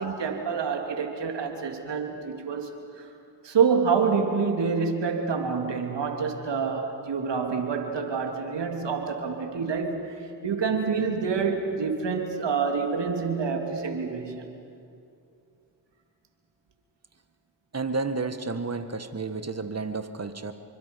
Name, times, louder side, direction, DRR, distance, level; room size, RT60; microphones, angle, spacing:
voice 1, 0.0-2.7 3.0-3.1 3.4-10.1 10.4-14.5, right 5 dB, 65° right, 4 dB, 3.0 m, -27 dB
voice 2, 17.7-20.5, right 4 dB, 35° right, 9 dB, 1.8 m, -31 dB
27.0 x 24.0 x 5.4 m, 2.5 s
supercardioid pair, 45°, 45 cm